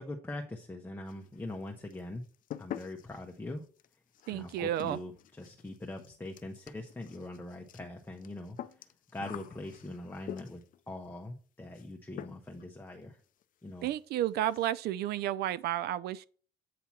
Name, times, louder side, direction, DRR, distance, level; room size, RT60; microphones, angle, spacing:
voice 1, 0.0-2.2 2.6-3.6 4.3-5.1 5.4-10.6 10.9-13.2 13.6-13.9, left 2 dB, 10° left, 0.9 m, -42 dB
sound 1, 1.0-1.6 1.9-10.8 11.7-11.9 12.2-12.7 12.9-13.0 13.4-13.5 13.8-14.0 14.3-14.7, left 11 dB, 55° left, 0.5 m, -47 dB
voice 2, 4.3-5.0 13.8-16.2, right 12 dB, 70° right, 0.4 m, -32 dB
8.5 x 2.8 x 5.8 m
cardioid pair, 110°, 17 cm